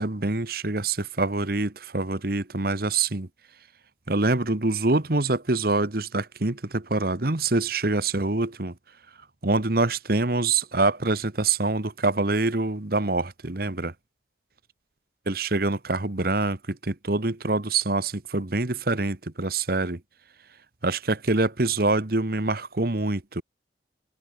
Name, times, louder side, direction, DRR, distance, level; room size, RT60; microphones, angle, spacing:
voice 1, 0.0-3.3 4.1-8.7 9.4-13.9 15.3-20.0 20.8-23.4, right 3 dB, 50° right, 1.4 m, -25 dB
head